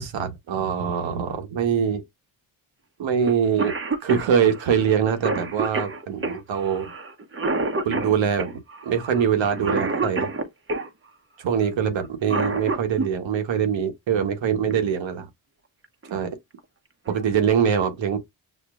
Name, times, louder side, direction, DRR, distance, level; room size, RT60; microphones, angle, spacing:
voice 1, 0.0-2.0 3.0-3.7 4.0-6.9 7.8-10.3 11.4-15.3 16.1-16.3 17.1-18.2, right 7 dB, 70° right, 1.2 m, -23 dB
Cough, 3.3-3.4 3.6-10.9 12.0-13.1 14.7-14.8 15.8-16.1 16.6-16.7 17.1-17.5, right 3 dB, 25° right, 0.9 m, -28 dB
6.5 x 2.2 x 2.4 m
cardioid pair, 65°, 46 cm